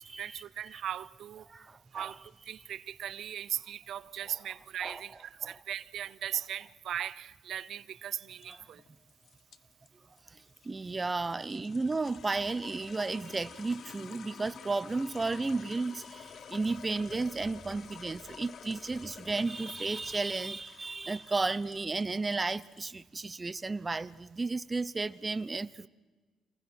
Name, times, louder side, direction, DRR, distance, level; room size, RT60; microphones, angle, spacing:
voice 1, 0.2-1.5 1.9-8.8, right 10 dB, 70° right, 0.6 m, -38 dB
voice 2, 1.5-2.1 4.8-5.0 5.4-5.6 8.5-8.6 10.6-25.9, right 3 dB, 25° right, 0.7 m, -33 dB
sound 1, 8.3-22.8, left 7 dB, 60° left, 1.0 m, -50 dB
27.0 x 19.5 x 6.2 m
cardioid pair, 90°, 0 cm